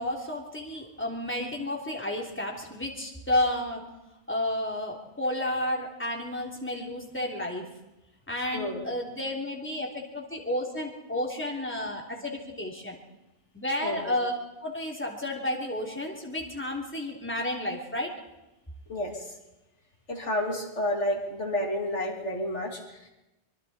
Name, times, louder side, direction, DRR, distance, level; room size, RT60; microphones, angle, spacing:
voice 1, 0.0-3.8 4.3-7.6 8.3-12.9 13.5-14.3 14.6-18.1, left 1 dB, 10° left, -1 dB, 3.3 m, -31 dB
voice 2, 13.8-14.2 18.9-19.3 20.1-22.8, left 1 dB, 75° left, 0 dB, 3.4 m, -30 dB
25.0 x 24.0 x 4.4 m, 0.97 s
omnidirectional pair, 1.2 m